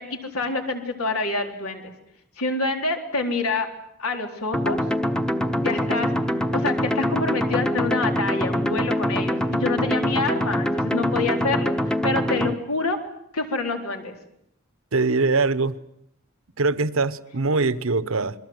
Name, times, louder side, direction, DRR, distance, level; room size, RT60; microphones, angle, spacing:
voice 1, 0.0-1.9 2.4-3.7 4.0-4.8 5.6-6.1 6.5-13.0 13.3-14.2, left 3 dB, 85° left, 3.9 m, -27 dB
sound 1, 4.5-12.5, equal, 5° left, 0.9 m, -24 dB
voice 2, 14.9-15.7 16.6-18.3, right 3 dB, 70° right, 1.0 m, -22 dB
28.0 x 22.0 x 7.9 m
head